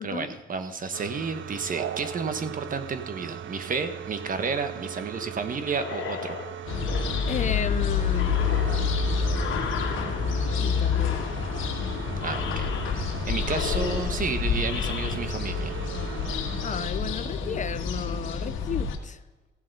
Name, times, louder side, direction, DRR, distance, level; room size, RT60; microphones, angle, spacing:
voice 1, 0.0-6.4 12.2-12.7 13.0-15.8, right 4 dB, 45° right, 9 dB, 1.4 m, -31 dB
sound 1, 0.9-16.9, right 10 dB, 70° right, 0.6 m, -39 dB
sound 2, 5.7-7.8 8.1-10.5 10.9-11.8 12.2-13.1 13.4-15.2, left 7 dB, 70° left, 1.7 m, -37 dB
sound 3, 6.7-19.0, left 6 dB, 85° left, 1.5 m, -28 dB
voice 2, 7.3-8.4 10.6-11.2 16.6-19.2, left 7 dB, 40° left, 14 dB, 0.5 m, -33 dB
15.5 x 7.5 x 5.4 m, 1.2 s
cardioid pair, 90°, 20 cm